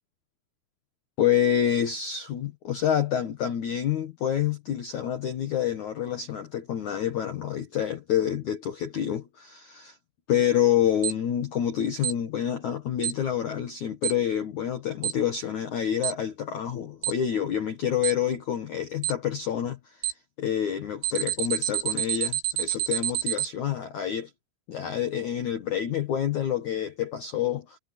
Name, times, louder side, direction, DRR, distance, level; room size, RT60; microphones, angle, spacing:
voice 1, 1.2-10.0 10.3-20.0 20.4-24.3 24.7-27.8, left 9 dB, 75° left, 1.7 m, -27 dB
Alarm, 11.0-11.1 12.0-12.1 13.0-13.1 14.0-14.1 15.0-15.1 16.0-16.1 17.0-17.1 18.0-18.1 19.0-19.1 20.0-20.1 21.0-23.5, right 14 dB, 70° right, 6.3 m, -27 dB
omnidirectional pair, 5.6 m